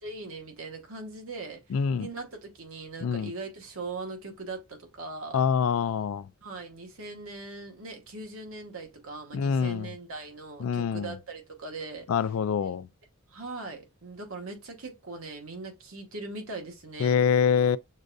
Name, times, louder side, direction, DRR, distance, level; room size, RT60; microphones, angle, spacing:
voice 1, 0.0-5.4 6.4-12.3 12.6-12.7 13.3-17.2, right 3 dB, 70° right, 1.3 m, -40 dB
voice 2, 1.7-2.1 3.0-3.3 5.3-6.2 9.3-9.9 10.6-11.1 12.1-12.9 17.0-17.8, left 7 dB, 70° left, 0.3 m, -25 dB
6.3 x 2.6 x 2.3 m
head